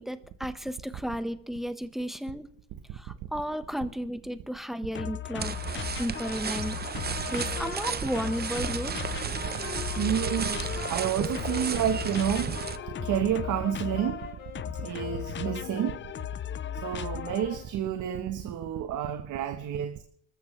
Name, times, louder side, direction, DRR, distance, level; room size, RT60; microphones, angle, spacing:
voice 1, 0.0-2.5 2.9-5.5 6.0-9.2, equal, ahead, 10 dB, 1.1 m, -34 dB
sound 1, 4.9-17.7, left 10 dB, 40° left, 0.5 m, -37 dB
sound 2, 5.4-12.8, right 7 dB, 30° right, 0.7 m, -34 dB
Wind instrument woodwind instrument, 7.5-16.2, left 9 dB, 80° left, 3.3 m, -43 dB
voice 2, 10.0-12.6 13.0-14.3 14.7-16.0 16.7-20.0, right 10 dB, 85° right, 7 dB, 1.1 m, -29 dB
24.5 x 14.0 x 3.2 m, 0.63 s
cardioid pair, 90°, 30 cm